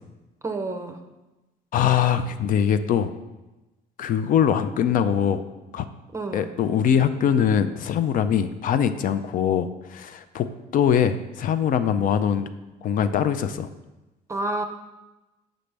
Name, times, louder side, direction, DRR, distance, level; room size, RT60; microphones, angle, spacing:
voice 1, 0.4-1.0 6.1-6.5 14.3-14.6, right 2 dB, 15° right, 6 dB, 0.5 m, -29 dB
voice 2, 1.7-3.1 4.0-5.4 5.7-5.8 6.3-10.5 10.7-12.5 12.8-13.7, left 8 dB, 55° left, 11 dB, 0.4 m, -22 dB
6.8 x 5.1 x 3.3 m, 1.1 s
cardioid pair, 110°, 17 cm